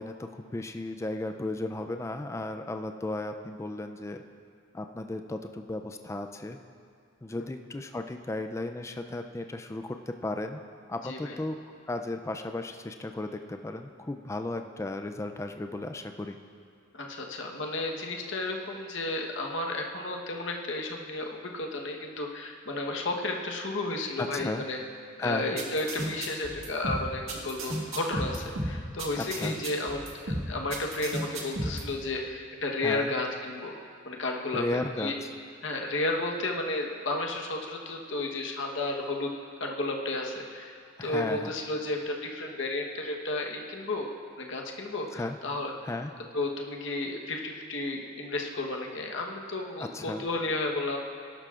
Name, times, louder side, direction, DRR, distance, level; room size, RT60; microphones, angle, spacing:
voice 1, 0.0-4.2 4.7-6.6 7.2-10.6 10.9-11.6 11.9-16.4 24.2-24.6 25.2-25.6 29.2-29.6 32.8-33.1 34.5-35.3 41.0-41.5 45.1-45.4 45.8-46.1 49.8-50.2, left 2 dB, 15° left, 6 dB, 0.3 m, -35 dB
voice 2, 11.0-11.4 16.9-24.8 25.2-33.7 34.0-35.1 35.6-39.3 39.6-44.1 44.4-45.7 46.3-51.0, left 2 dB, 65° left, 1 dB, 1.1 m, -32 dB
sound 1, 25.6-31.8, right 1 dB, 80° right, 1.8 m, -33 dB
18.5 x 11.5 x 2.4 m, 2.3 s
head